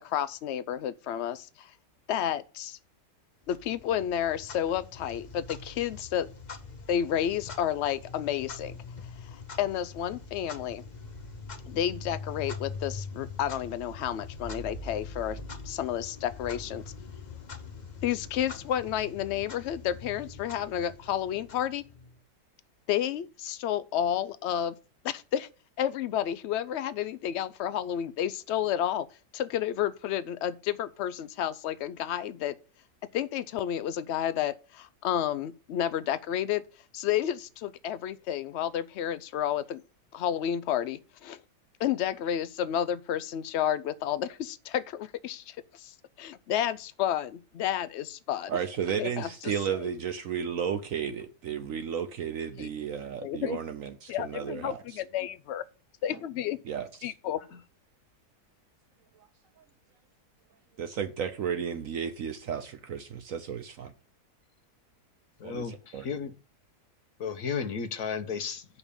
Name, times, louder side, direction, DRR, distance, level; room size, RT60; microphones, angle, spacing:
voice 1, 0.0-1.7 2.1-2.8 3.5-6.3 6.9-8.8 9.3-10.8 11.7-15.4 15.6-16.8 18.0-21.8 22.9-24.7 25.0-25.5 25.8-29.1 29.3-32.6 33.1-36.6 36.9-39.8 40.1-41.4 41.8-48.6 49.0-49.5 52.6-52.7 53.2-53.6 54.1-55.6 56.0-56.6 57.0-57.4, left 10 dB, 90° left, 0.5 m, -31 dB
Clock, 3.5-22.2, left 4 dB, 35° left, 0.8 m, -43 dB
voice 2, 48.5-55.0 56.6-57.1 59.6-59.7 60.8-63.9 65.4-66.1, right 8 dB, 65° right, 1.0 m, -33 dB
voice 3, 65.4-66.3 67.2-68.7, left 6 dB, 60° left, 1.2 m, -33 dB
7.0 x 5.5 x 6.9 m
omnidirectional pair, 1.7 m